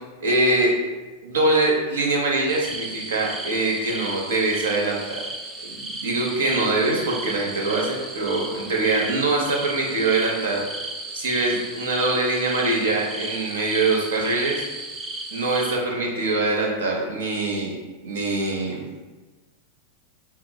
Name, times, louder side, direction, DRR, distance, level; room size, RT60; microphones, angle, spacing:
voice 1, 0.2-0.7 1.2-5.2 5.6-10.6 11.1-14.6 15.3-17.7 18.0-18.8, right 2 dB, 65° right, -1 dB, 0.7 m, -23 dB
sound 1, 2.5-15.8, right 2 dB, 15° right, 0.4 m, -35 dB
5.4 x 2.0 x 2.2 m, 1.2 s
figure-of-eight pair, 90°, 0 cm